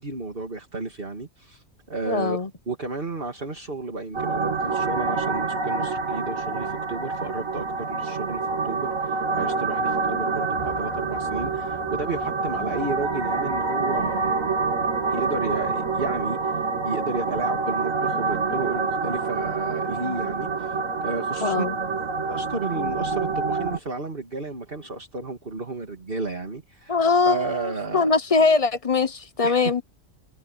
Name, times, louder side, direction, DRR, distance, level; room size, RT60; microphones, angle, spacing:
voice 1, 0.0-2.4 2.7-14.3 15.1-21.6 22.3-27.0 27.2-28.1 29.4-29.8, right 3 dB, 45° right, 2.7 m, -32 dB
voice 2, 2.1-2.5 12.6-12.7 21.4-21.8 26.9-29.8, left 4 dB, 30° left, 0.8 m, -22 dB
sound 1, 4.1-23.8, right 4 dB, 85° right, 2.2 m, -27 dB
sound 2, 10.5-16.4, equal, 10° left, 4.6 m, -44 dB
omnidirectional pair, 1.3 m